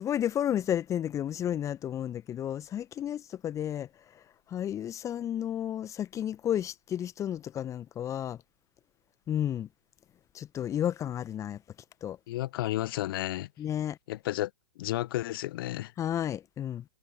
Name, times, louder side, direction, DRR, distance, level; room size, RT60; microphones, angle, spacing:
voice 1, 0.0-3.9 4.1-4.2 4.5-8.4 9.3-9.7 10.3-11.6 12.0-12.2 13.6-14.0 16.0-16.8, left 10 dB, 20° left, 1.5 m, -32 dB
voice 2, 12.3-13.5 14.1-14.5 14.8-15.9, left 16 dB, 40° left, 1.4 m, -32 dB
figure-of-eight pair, 110°, 17 cm